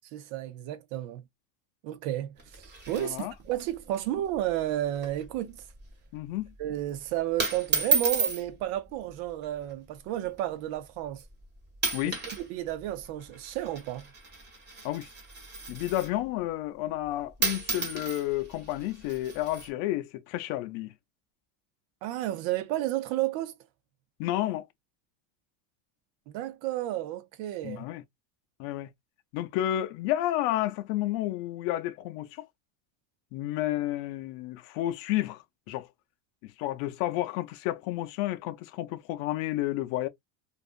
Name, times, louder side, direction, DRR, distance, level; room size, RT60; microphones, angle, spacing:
voice 1, 0.1-1.2 1.8-5.5 6.6-11.2 12.4-14.1 22.0-23.5 26.3-27.8, right 13 dB, 65° right, 0.7 m, -32 dB
sound 1, 2.4-3.6 3.9-4.0 4.3-4.6 4.9-5.3 5.6-5.9 6.6-6.9 7.4-8.4 9.4-9.7 10.4-10.5 11.2-11.4 11.7-12.5 12.7-16.2 17.1-17.2 17.4-19.7, right 4 dB, 20° right, 1.3 m, -32 dB
voice 2, 2.9-3.3 6.1-6.5 11.9-12.2 14.8-15.1 15.7-20.9 24.2-24.7 27.6-28.0 28.6-28.9 29.3-32.5 33.3-35.9 36.4-40.1, left 14 dB, 70° left, 0.6 m, -31 dB
2.5 x 2.4 x 2.4 m
supercardioid pair, 130°, 50 cm